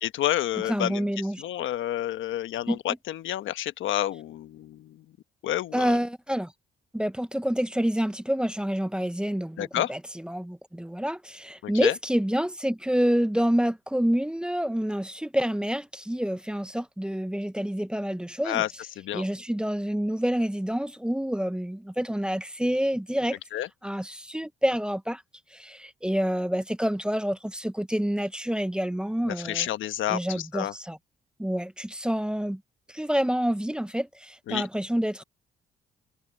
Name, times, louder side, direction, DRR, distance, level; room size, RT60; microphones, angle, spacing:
voice 1, 0.0-1.1 1.4-5.0 5.4-5.9 9.6-9.9 11.6-11.9 18.4-19.3 23.5-23.7 29.3-30.7 34.5-34.6, left 12 dB, 80° left, 1.1 m, -29 dB
voice 2, 0.7-1.4 2.7-2.8 5.7-6.5 6.9-10.0 10.2-18.6 19.1-23.4 23.8-25.2 25.5-29.7 30.1-31.0 31.4-32.6 32.9-35.2, equal, 5° right, 0.8 m, -28 dB
cardioid pair, 90°, 20 cm